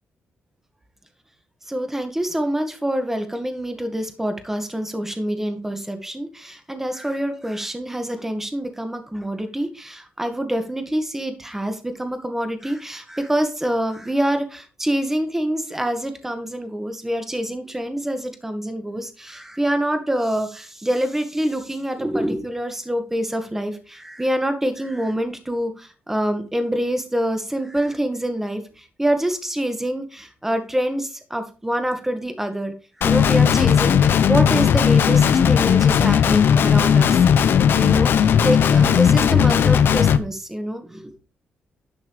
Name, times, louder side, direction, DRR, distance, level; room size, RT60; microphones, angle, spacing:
voice 1, 1.7-41.2, right 1 dB, 10° right, 7 dB, 2.0 m, -26 dB
Guitar, 33.0-40.2, left 8 dB, 70° left, 0.8 m, -16 dB
11.5 x 6.0 x 4.9 m, 0.34 s
cardioid pair, 100°, 4 cm